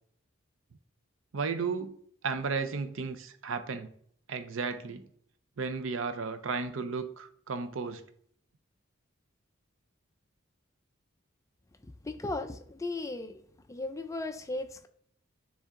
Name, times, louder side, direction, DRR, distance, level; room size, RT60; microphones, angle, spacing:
voice 1, 1.3-2.0 2.2-3.9 4.3-5.1 5.6-8.0, right 5 dB, 70° right, 0.6 m, -34 dB
voice 2, 12.0-13.4 13.7-14.9, left 2 dB, 15° left, 0.4 m, -36 dB
9.9 x 3.5 x 3.7 m
head